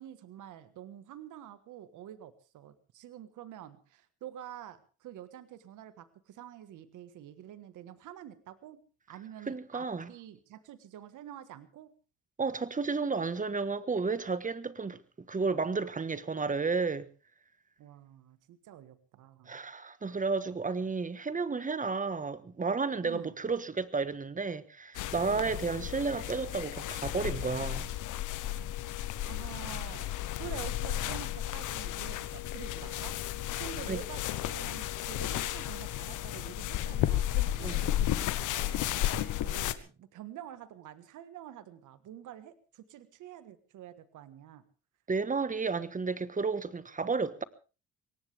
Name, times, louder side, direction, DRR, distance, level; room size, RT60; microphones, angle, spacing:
voice 1, 0.0-8.8 9.1-11.9 17.8-19.6 23.0-23.3 25.2-25.5 29.2-33.2 33.6-38.9 39.4-44.6, right 11 dB, 85° right, 1.6 m, -47 dB
voice 2, 9.5-10.1 12.4-15.0 15.3-17.1 19.5-27.9 33.9-34.0 37.6-37.8 45.1-47.4, right 4 dB, 25° right, 1.4 m, -32 dB
sound 1, 24.9-39.7, left 13 dB, 85° left, 1.1 m, -33 dB
22.5 x 18.5 x 3.5 m
cardioid pair, 90°, 30 cm